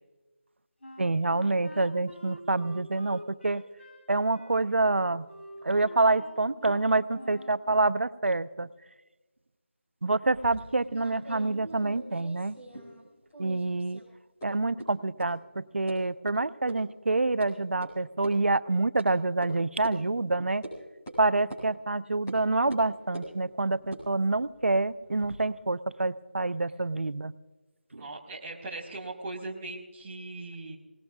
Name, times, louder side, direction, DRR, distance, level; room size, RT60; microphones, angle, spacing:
Wind instrument woodwind instrument, 0.8-7.6, left 1 dB, 85° left, 3.0 m, -47 dB
voice 1, 1.0-3.6 4.1-5.3 5.6-8.7 10.0-12.6 13.4-14.0 14.4-20.6 21.2-27.3 27.9-28.0, right 2 dB, 80° right, 14 dB, 0.7 m, -27 dB
sound 1, 10.2-13.1 13.3-14.1 14.4-14.5 14.8-14.9 15.2-15.3 15.9-16.0 16.3-16.4 16.7-16.8 17.1-17.5 17.8-17.9 18.2-18.3 19.0-19.1 19.4-19.5 19.8-20.0 20.6-20.8 21.1-21.2 21.5-21.6 22.3-22.4 22.7-23.3 23.8-25.4, right 1 dB, 10° left, 4.3 m, -43 dB
voice 2, 28.0-30.8, right 2 dB, 5° right, -7 dB, 0.5 m, -39 dB
28.5 x 18.5 x 2.4 m, 1.2 s
figure-of-eight pair, 180°, 6 cm